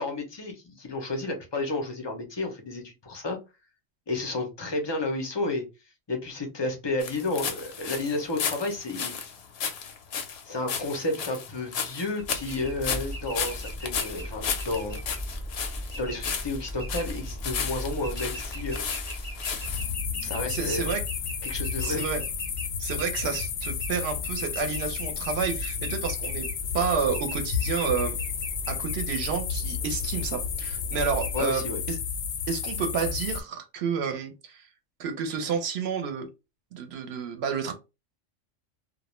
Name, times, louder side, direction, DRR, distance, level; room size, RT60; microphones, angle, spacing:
voice 1, 0.0-3.4 4.1-5.6 6.1-9.1 10.4-15.0 15.9-18.8 20.2-20.9 21.4-22.0 31.3-31.8, left 2 dB, 40° left, 0.3 m, -31 dB
sound 1, 7.0-19.9, left 7 dB, 65° left, 0.7 m, -34 dB
sound 2, 12.2-31.4, equal, 20° right, 0.7 m, -38 dB
sound 3, 19.6-33.4, left 7 dB, 85° left, 1.0 m, -32 dB
voice 2, 20.5-21.0 21.8-22.2 22.8-26.5 26.7-28.2 28.7-32.0 32.5-34.6 35.0-36.3 36.7-37.7, right 6 dB, 60° right, 0.8 m, -30 dB
2.3 x 2.1 x 2.9 m
omnidirectional pair, 1.3 m